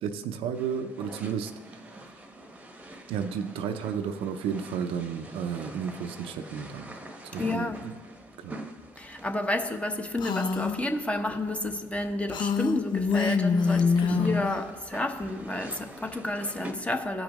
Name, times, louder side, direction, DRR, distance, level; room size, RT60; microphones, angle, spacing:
voice 1, 0.0-2.1 3.1-6.9 7.3-7.9 8.4-8.6 14.1-14.4, right 7 dB, 70° right, 8 dB, 0.6 m, -33 dB
sound 1, 0.5-16.7, right 1 dB, 15° right, 1.0 m, -46 dB
voice 2, 7.4-7.8 9.0-17.2, left 1 dB, 15° left, 5 dB, 0.9 m, -30 dB
Female speech woman speaking, 10.2-10.8 12.3-14.6, left 5 dB, 50° left, 0.6 m, -25 dB
15.0 x 5.1 x 3.1 m, 1.3 s
supercardioid pair, 65°, 10 cm